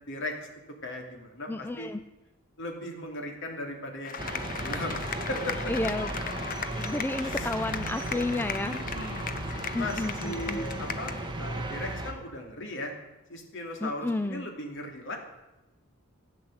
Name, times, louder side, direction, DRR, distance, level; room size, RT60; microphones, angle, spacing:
voice 1, 0.1-0.4 0.8-1.9 2.6-5.0 5.3-5.6 7.2-7.5 8.6-12.9 13.3-15.2, left 1 dB, 60° left, 2 dB, 2.8 m, -38 dB
voice 2, 1.5-2.0 5.7-6.1 6.7-8.8 9.7-10.6 13.8-14.5, left 2 dB, 10° left, 9 dB, 0.4 m, -31 dB
sound 1, 4.0-11.3, left 6 dB, 40° left, 0.8 m, -37 dB
sound 2, 4.2-12.1, right 1 dB, 20° right, 1.6 m, -35 dB
15.0 x 9.2 x 7.9 m, 0.99 s
head